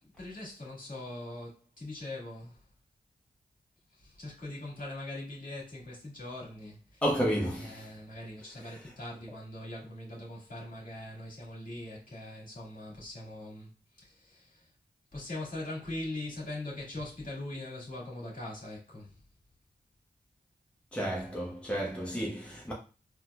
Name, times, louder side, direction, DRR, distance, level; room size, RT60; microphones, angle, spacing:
voice 1, 0.0-2.6 4.0-7.0 7.6-13.7 14.0-14.7 15.1-19.1, left 1 dB, 55° left, 1.9 m, -41 dB
voice 2, 7.0-7.9 8.6-8.8 20.9-22.7, equal, 5° left, 1.0 m, -32 dB
4.0 x 2.8 x 2.3 m
cardioid pair, 45°, 17 cm